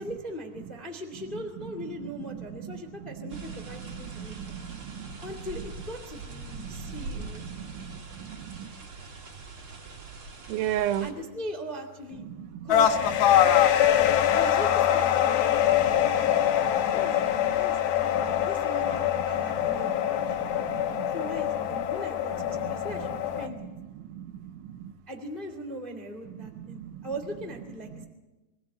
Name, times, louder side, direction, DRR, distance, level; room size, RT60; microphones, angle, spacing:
voice 1, 0.0-4.6 5.2-7.4 11.0-12.2 12.6-13.2 14.3-16.4 16.9-17.2 17.5-20.6 21.1-23.7 25.1-28.0, equal, 25° left, 4 dB, 1.1 m, -39 dB
voice 2, 2.3-2.8 3.0-5.2 6.6-8.7 10.5-11.1 12.3-12.7 13.4-13.5 13.8-14.4 15.7-17.6 18.1-18.5 19.3-21.2 22.5-23.0 23.6-23.7 24.0-24.9 26.3-27.1, right 11 dB, 80° right, 9 dB, 3.4 m, -38 dB
sound 1, 3.3-11.1, right 3 dB, 30° right, 3.1 m, -42 dB
sound 2, 12.7-23.5, left 11 dB, 70° left, 3.2 m, -24 dB
25.0 x 17.5 x 8.5 m, 1.1 s
omnidirectional pair, 5.5 m